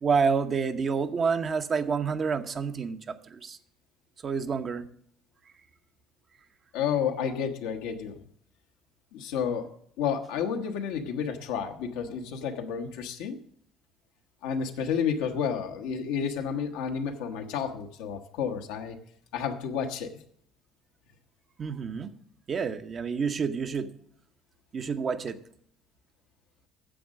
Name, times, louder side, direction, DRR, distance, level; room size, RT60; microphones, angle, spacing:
voice 1, 0.0-3.6 4.2-4.9 21.6-22.1 22.5-23.9 24.7-25.4, right 5 dB, 45° right, 8 dB, 0.9 m, -28 dB
voice 2, 6.7-8.2 9.1-9.7 10.0-13.4 14.4-19.0 19.3-20.2, left 7 dB, 80° left, 4 dB, 1.1 m, -31 dB
10.0 x 7.2 x 6.4 m, 0.65 s
supercardioid pair, 70°, 0 cm